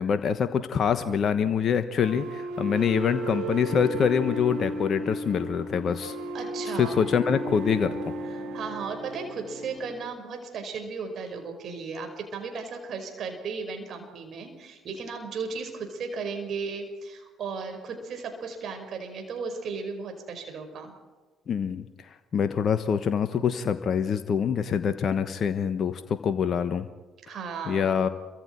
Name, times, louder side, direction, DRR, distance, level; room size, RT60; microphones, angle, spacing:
voice 1, 0.0-6.2 6.8-7.9 21.5-26.9 27.7-28.1, left 7 dB, 50° left, 10 dB, 1.2 m, -25 dB
sound 1, 2.0-10.0, right 1 dB, 70° right, 5.4 m, -34 dB
voice 2, 6.3-7.0 8.5-20.9 27.2-27.9, right 5 dB, 55° right, 5 dB, 5.2 m, -35 dB
30.0 x 24.5 x 4.6 m, 1.3 s
hypercardioid pair, 50°, 0 cm